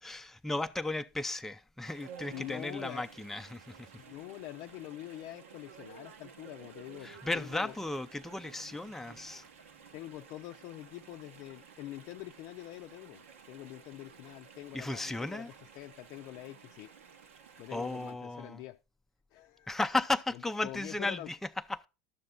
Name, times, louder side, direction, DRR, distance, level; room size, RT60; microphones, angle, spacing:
voice 1, 0.0-3.9 7.0-9.4 14.7-15.5 17.7-18.6 19.7-21.9, left 2 dB, 5° left, 0.5 m, -35 dB
Chatter / Stream, 1.8-18.1, right 6 dB, 85° right, 1.1 m, -54 dB
voice 2, 2.3-3.1 4.0-7.7 9.9-16.9 17.6-18.8 19.3-19.7 20.3-21.3, left 15 dB, 55° left, 0.5 m, -45 dB
11.5 x 7.0 x 3.8 m
hypercardioid pair, 95°, 7 cm